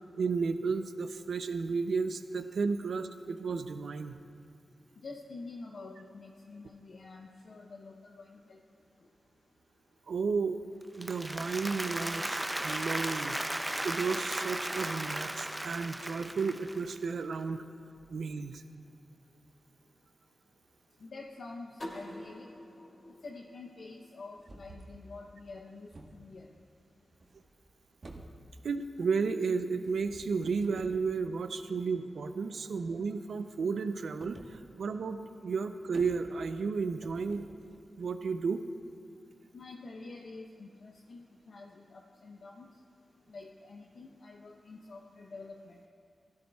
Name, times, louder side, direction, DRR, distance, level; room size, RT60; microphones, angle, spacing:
voice 1, 0.1-4.2 10.1-10.6 11.0-17.7 18.1-18.6 28.6-37.5 38.0-38.6, right 4 dB, 80° right, 9 dB, 0.5 m, -33 dB
voice 2, 5.0-8.6 21.0-22.5 23.2-26.5 39.5-42.7 43.3-45.8, left 3 dB, 75° left, 0 dB, 0.7 m, -47 dB
Applause, 10.8-17.0, right 1 dB, 15° right, 0.5 m, -36 dB
sound 1, 21.8-24.6, left 1 dB, 50° left, 2.6 m, -47 dB
sound 2, 24.4-25.0 25.5-26.5 27.1-27.7 28.0-28.8 29.8-31.0 34.2-34.6 34.9-35.0 35.3-35.4 35.6-36.6 37.0-38.3, right 2 dB, 55° right, 1.3 m, -51 dB
16.5 x 12.0 x 2.3 m, 2.3 s
cardioid pair, 45°, 0 cm